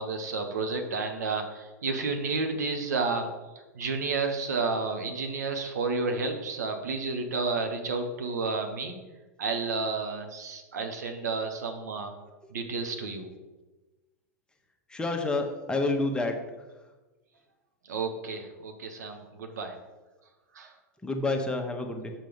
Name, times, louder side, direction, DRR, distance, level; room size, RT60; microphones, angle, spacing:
voice 1, 0.0-3.3 3.7-8.9 9.4-12.1 12.5-13.3 17.9-19.7 20.5-20.7, right 4 dB, 75° right, 5 dB, 1.2 m, -31 dB
voice 2, 14.9-16.4 21.0-22.1, left 2 dB, 10° left, 3 dB, 1.1 m, -28 dB
7.6 x 5.2 x 5.2 m, 1.1 s
hypercardioid pair, 100°, 9 cm